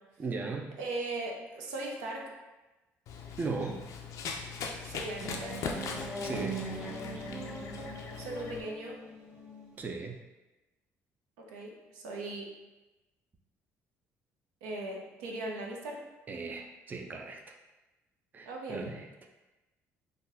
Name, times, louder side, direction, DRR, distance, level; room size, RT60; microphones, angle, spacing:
voice 1, 0.2-0.7 3.4-3.8 6.2-6.6 9.8-10.2 16.3-17.4 18.3-19.1, right 4 dB, 30° right, 3 dB, 0.4 m, -37 dB
voice 2, 0.8-2.2 4.8-5.6 8.2-9.0 11.4-12.5 14.6-16.0 18.5-18.9, right 2 dB, 90° right, -1 dB, 0.5 m, -38 dB
Run, 3.1-8.6, left 5 dB, 65° left, 0.4 m, -40 dB
sound 1, 5.2-9.9, right 2 dB, 15° right, 0.9 m, -41 dB
3.8 x 2.2 x 2.6 m, 1.1 s
supercardioid pair, 80°, 6 cm